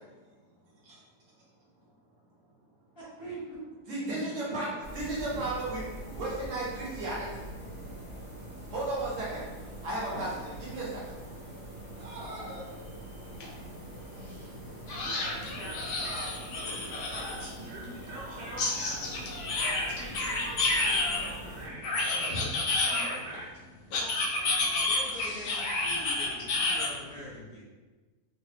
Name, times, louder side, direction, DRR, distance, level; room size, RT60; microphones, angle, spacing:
voice 1, 2.9-3.6 21.9-22.3 23.9-27.6, equal, 40° left, -8 dB, 1.1 m, -44 dB
voice 2, 3.9-7.5 8.7-9.5 9.8-11.0, right 2 dB, 55° right, -6 dB, 1.1 m, -34 dB
sound 1, 4.8-21.7, right 1 dB, 10° right, 0.8 m, -44 dB
voice 3, 12.0-12.6 14.1-19.3 19.6-22.4 22.7-23.5, right 1 dB, 70° right, -5 dB, 1.4 m, -44 dB
sound 2, 13.4-13.5 13.8-13.9 14.9-17.5 18.6-21.3 21.8-23.4 23.9-26.9, left 2 dB, 70° left, 0.7 m, -30 dB
3.2 x 2.1 x 3.2 m, 1.3 s
omnidirectional pair, 1.7 m